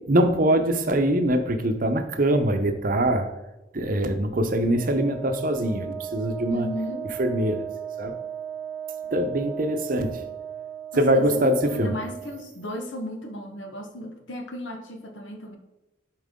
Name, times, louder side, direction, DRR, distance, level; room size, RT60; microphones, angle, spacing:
voice 1, 0.1-3.3 3.7-6.7 7.2-7.7 8.0-8.1 9.1-10.2 11.0-12.0, right 1 dB, 45° right, 7 dB, 0.8 m, -23 dB
Wind instrument woodwind instrument, 4.7-12.5, right 9 dB, 15° right, 0.7 m, -36 dB
voice 2, 6.5-7.1 10.9-15.6, equal, 75° left, 5 dB, 1.2 m, -35 dB
11.0 x 4.7 x 3.7 m, 1.0 s
head